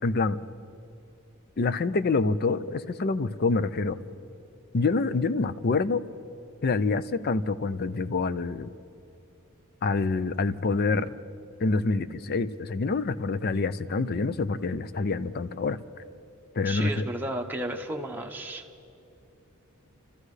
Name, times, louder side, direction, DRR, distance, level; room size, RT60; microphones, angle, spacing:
voice 1, 0.0-0.4 1.6-4.0 4.7-6.0 6.6-8.7 9.8-11.1 11.6-15.8 16.6-17.1, left 3 dB, 45° left, 14 dB, 0.5 m, -26 dB
voice 2, 16.6-18.6, right 1 dB, 10° right, 1 dB, 0.9 m, -33 dB
29.5 x 14.0 x 3.3 m, 2.8 s
head